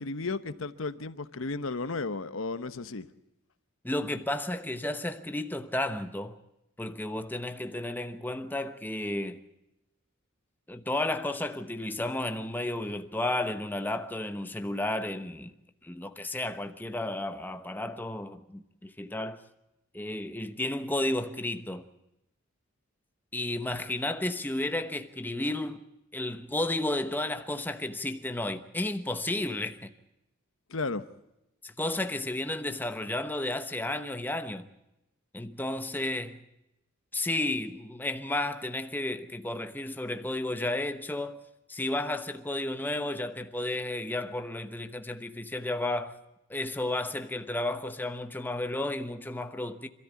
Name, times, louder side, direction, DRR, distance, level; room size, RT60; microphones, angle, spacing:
voice 1, 0.0-3.1 30.7-31.0, left 3 dB, 75° left, 1.0 m, -34 dB
voice 2, 3.8-6.4 6.8-9.4 10.7-15.5 15.8-19.4 19.9-21.8 23.3-25.8 26.1-29.9 31.6-34.7 35.3-36.4 37.1-41.4 41.7-46.1 46.5-49.9, left 1 dB, 10° left, 1.0 m, -32 dB
26.5 x 13.5 x 8.3 m
head